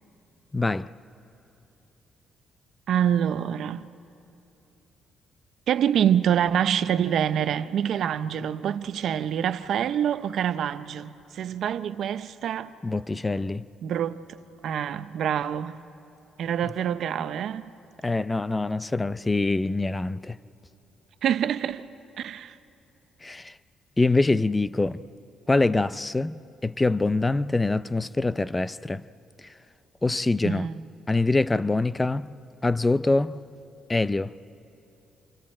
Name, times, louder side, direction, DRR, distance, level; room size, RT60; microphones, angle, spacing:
voice 1, 0.5-0.9 12.8-13.6 18.0-20.4 23.2-23.5 24.0-25.0 25.5-26.3 26.6-29.0 30.0-30.7 31.1-32.3 32.6-33.4 33.9-34.3, left 2 dB, 15° left, 0.4 m, -24 dB
voice 2, 2.9-3.9 5.7-12.7 13.8-14.2 14.6-15.8 16.4-17.7 21.2-21.9 22.2-22.5 30.4-30.7, right 9 dB, 70° right, 0.6 m, -26 dB
30.0 x 26.0 x 4.4 m
cardioid pair, 90°, 0 cm